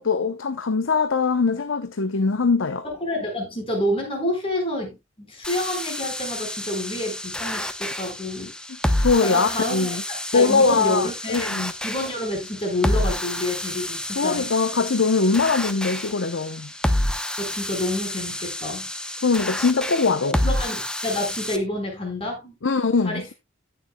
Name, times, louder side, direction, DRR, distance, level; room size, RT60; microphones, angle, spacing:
voice 1, 0.0-2.8 9.0-10.0 10.3-11.7 14.1-16.7 19.2-20.4 22.6-23.3, left 4 dB, 75° left, 0.7 m, -22 dB
voice 2, 2.8-8.5 9.2-14.5 17.4-18.9 20.4-22.6 23.0-23.3, left 1 dB, 30° left, 4.5 m, -28 dB
sound 1, 5.4-21.6, left 1 dB, 5° left, 0.8 m, -29 dB
17.0 x 6.9 x 2.2 m
head